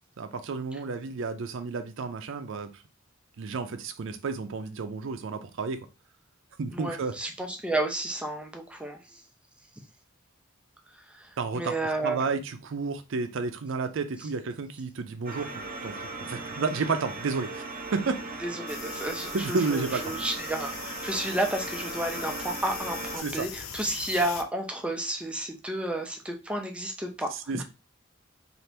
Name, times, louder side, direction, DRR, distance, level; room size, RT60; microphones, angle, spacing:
voice 1, 0.2-2.7 3.4-5.9 6.6-7.1 11.4-11.7 12.0-17.6 17.9-18.1 19.3-20.1 23.2-23.5 27.5-27.6, right 4 dB, 65° right, 0.5 m, -31 dB
voice 2, 6.7-9.2 10.9-12.3 18.4-27.6, right 1 dB, 5° right, 0.4 m, -32 dB
sound 1, 15.2-23.2, right 3 dB, 45° right, 0.8 m, -38 dB
sound 2, 18.7-24.4, left 8 dB, 80° left, 0.4 m, -41 dB
2.8 x 2.5 x 3.3 m
head